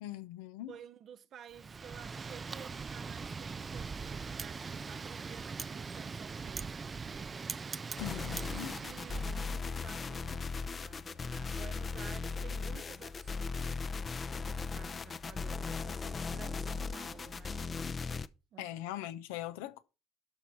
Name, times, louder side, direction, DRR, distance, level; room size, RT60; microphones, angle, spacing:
voice 1, 0.0-0.8 8.0-8.8 18.6-19.8, left 13 dB, 85° left, 0.9 m, -41 dB
voice 2, 0.7-7.5 8.4-13.7 14.1-17.6 18.5-18.7, right 9 dB, 50° right, 0.9 m, -53 dB
Wind, 1.5-9.7, right 5 dB, 30° right, 0.5 m, -41 dB
sound 1, 8.0-18.3, left 4 dB, 30° left, 0.7 m, -38 dB
12.5 x 4.7 x 5.8 m
supercardioid pair, 85°, 0 cm